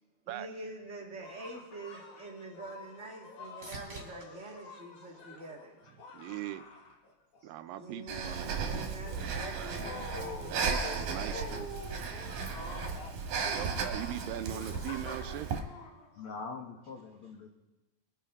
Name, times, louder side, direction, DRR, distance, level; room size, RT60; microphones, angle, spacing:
voice 1, 0.2-5.8 7.8-11.6, right 2 dB, 40° right, 0 dB, 1.0 m, -46 dB
sound 1, 1.2-7.4 7.7-16.6, left 3 dB, 60° left, 3.0 m, -47 dB
sound 2, 2.5-6.1 6.6-7.2 15.0-15.1, right 2 dB, 20° right, 3.3 m, -52 dB
voice 2, 6.1-6.6 7.4-8.8 9.5-9.8 10.5-11.7 13.5-15.5, right 13 dB, 80° right, 11 dB, 2.3 m, -40 dB
voice 3, 7.4-7.7 12.3-12.6 13.1-13.6 16.1-17.5, left 4 dB, 80° left, 3 dB, 1.2 m, -46 dB
Breathing, 8.1-15.6, right 5 dB, 65° right, 2.6 m, -35 dB
23.0 x 10.5 x 3.6 m, 1.0 s
omnidirectional pair, 4.1 m